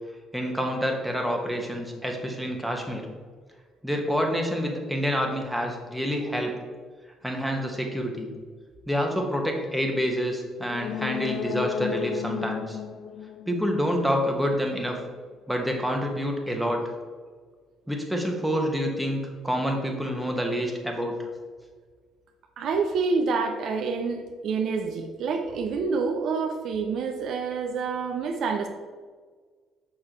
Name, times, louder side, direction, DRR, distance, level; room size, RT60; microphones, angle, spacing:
voice 1, 0.3-3.1 3.8-6.5 7.2-8.3 8.9-12.8 13.5-14.9 15.5-16.8 17.9-19.2 19.4-21.1, equal, ahead, 1 dB, 1.5 m, -27 dB
sound 1, 10.6-14.3 14.7-14.8, left 9 dB, 65° left, 0.3 m, -33 dB
voice 2, 22.6-28.7, right 4 dB, 60° right, 4 dB, 0.6 m, -27 dB
6.4 x 6.1 x 3.1 m, 1.5 s
hypercardioid pair, 50°, 0 cm